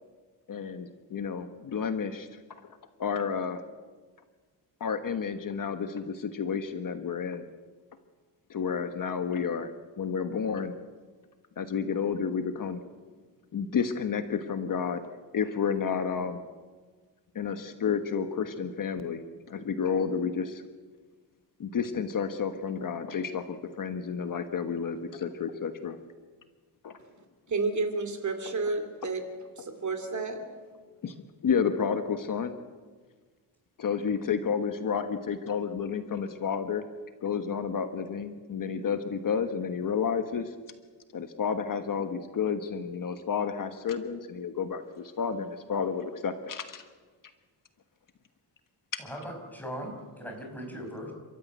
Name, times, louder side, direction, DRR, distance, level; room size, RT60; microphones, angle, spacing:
voice 1, 0.5-2.4 3.0-3.6 4.8-7.5 8.5-9.7 10.0-10.7 11.6-12.8 13.5-15.0 15.3-16.5 17.3-20.6 21.6-26.0 26.8-27.0 31.0-31.2 31.4-32.5 33.8-36.8 37.2-40.5 41.1-46.8 48.9-49.0, left 6 dB, 50° left, 8 dB, 1.3 m, -31 dB
voice 2, 27.5-29.2 29.6-30.4, right 3 dB, 40° right, 6 dB, 2.5 m, -31 dB
voice 3, 49.0-51.1, equal, 5° left, 1 dB, 5.5 m, -39 dB
30.0 x 13.5 x 9.3 m, 1.4 s
wide cardioid pair, 165°, 43 cm